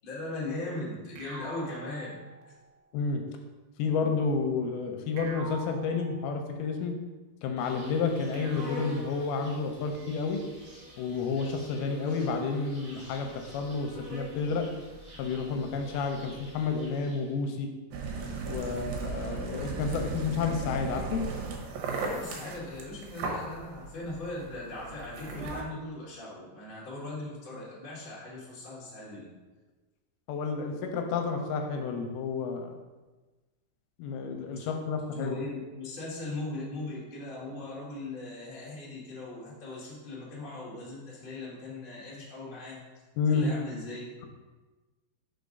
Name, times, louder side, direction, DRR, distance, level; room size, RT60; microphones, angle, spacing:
voice 1, 0.0-2.2 2.4-2.5 18.6-18.7 22.0-29.3 34.5-34.7 35.1-42.8 43.3-44.2, left 2 dB, 55° left, -7 dB, 0.5 m, -39 dB
sound 1, 1.2-2.8 5.2-6.8 8.3-9.8, right 2 dB, 90° right, 3.0 m, -46 dB
voice 2, 3.8-6.9 7.4-10.4 11.0-14.6 15.2-17.7 18.5-21.2 30.3-32.8 34.0-35.4 43.2-43.5, left 4 dB, 80° left, 4 dB, 2.4 m, -30 dB
Insect, 7.6-17.4, equal, 25° right, 1.9 m, -47 dB
sound 2, 17.9-25.6, right 4 dB, 75° right, 2.5 m, -36 dB
5.2 x 4.6 x 5.2 m, 1.2 s
omnidirectional pair, 4.7 m